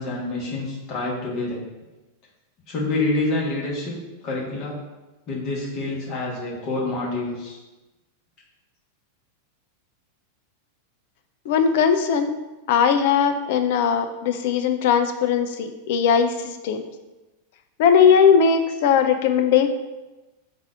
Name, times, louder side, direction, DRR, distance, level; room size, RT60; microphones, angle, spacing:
voice 1, 0.0-1.6 2.7-4.8 5.3-7.6, left 2 dB, 35° left, -4 dB, 1.4 m, -27 dB
voice 2, 11.5-12.3 12.7-16.8 17.8-19.7, left 7 dB, 50° left, 7 dB, 0.4 m, -19 dB
4.0 x 2.6 x 4.6 m, 1.1 s
figure-of-eight pair, 90°, 0 cm